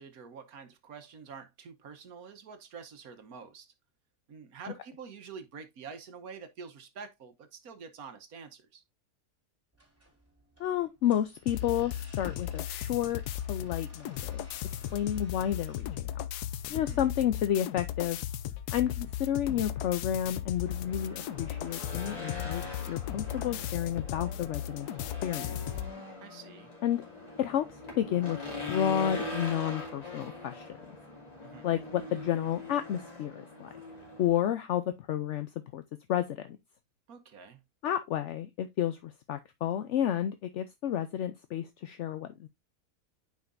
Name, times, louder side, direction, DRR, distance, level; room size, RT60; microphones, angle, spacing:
voice 1, 0.0-3.7 4.3-8.8 16.7-17.0 26.2-26.7 31.4-31.7 37.1-37.6, right 5 dB, 70° right, 1.5 m, -47 dB
sound 1, 9.7-15.9, right 1 dB, 10° right, 3.3 m, -58 dB
voice 2, 10.6-14.4 14.9-16.2 16.7-18.2 18.7-24.9 25.2-25.6 26.8-27.0 27.4-28.4 28.7-30.6 31.6-33.7 34.2-35.8 36.1-36.6 37.8-42.5, left 10 dB, 65° left, 0.8 m, -31 dB
sound 2, 11.5-25.9, left 11 dB, 85° left, 1.1 m, -36 dB
Race car auto racing / Engine, 20.6-34.3, left 2 dB, 25° left, 2.5 m, -42 dB
9.2 x 5.1 x 2.5 m
omnidirectional pair, 1.6 m